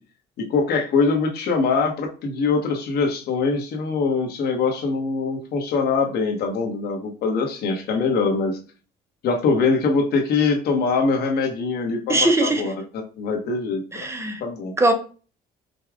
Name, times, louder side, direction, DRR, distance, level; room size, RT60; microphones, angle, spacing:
voice 1, 0.4-8.6 9.2-12.7 13.2-14.1 14.4-14.7, left 4 dB, 70° left, 1.2 m, -23 dB
voice 2, 12.1-12.6 13.9-14.4 14.8-14.9, right 2 dB, 15° right, 0.7 m, -20 dB
5.3 x 2.3 x 3.5 m
cardioid pair, 110°, 17 cm